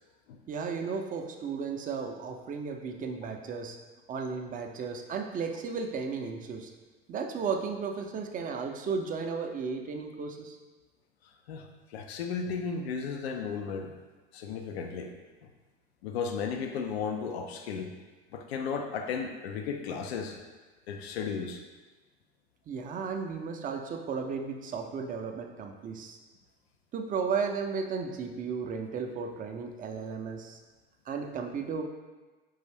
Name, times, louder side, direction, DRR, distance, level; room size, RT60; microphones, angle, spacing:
voice 1, 0.5-3.8 4.1-6.7 7.1-10.6 22.7-26.2 26.9-30.6 31.1-31.8, right 5 dB, 25° right, 4 dB, 0.4 m, -34 dB
voice 2, 11.5-13.9 14.3-15.1 16.0-17.9 18.3-20.4 20.9-21.6, left 6 dB, 80° left, 4 dB, 0.5 m, -34 dB
5.4 x 2.5 x 3.3 m, 1.3 s
hypercardioid pair, 85°, 31 cm